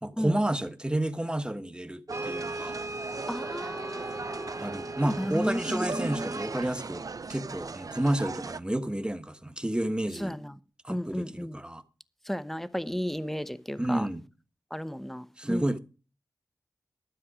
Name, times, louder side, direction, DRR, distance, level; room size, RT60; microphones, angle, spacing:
voice 1, 0.0-2.8 4.6-10.4 10.8-11.8 13.8-14.2 15.4-15.8, right 1 dB, 15° right, 1.3 m, -30 dB
Brass instrument, 2.1-6.7, right 2 dB, 40° right, 1.8 m, -39 dB
sound 1, 2.1-8.6, right 4 dB, 55° right, 0.6 m, -38 dB
voice 2, 3.3-4.7 5.0-6.4 10.2-10.5 10.9-11.6 12.3-14.1 14.7-15.8, equal, 5° left, 0.9 m, -34 dB
12.5 x 7.5 x 5.0 m
wide cardioid pair, 55°, 7 cm